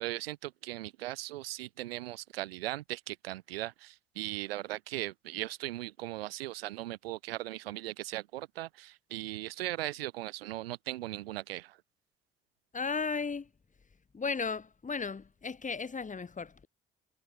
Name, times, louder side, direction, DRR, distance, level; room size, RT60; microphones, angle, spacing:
voice 1, 0.0-11.8, right 16 dB, 90° right, 0.9 m, -38 dB
voice 2, 12.7-13.5 14.1-16.7, left 5 dB, 25° left, 1.1 m, -35 dB
hypercardioid pair, 40°, 29 cm